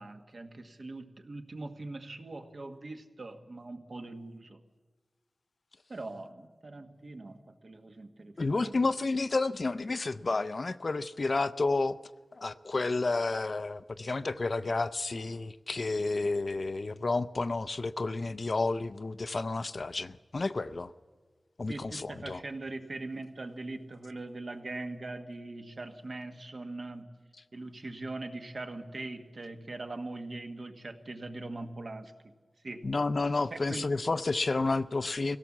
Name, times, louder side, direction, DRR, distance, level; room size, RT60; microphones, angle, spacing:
voice 1, 0.0-4.6 5.9-8.8 21.7-27.2 27.5-32.1 32.6-32.9 33.5-33.9, right 2 dB, 55° right, 1.4 m, -41 dB
voice 2, 8.4-12.0 12.4-20.9 21.6-22.4 32.8-35.4, left 3 dB, 50° left, 0.5 m, -31 dB
24.0 x 17.0 x 7.3 m
wide cardioid pair, 95°, 0 cm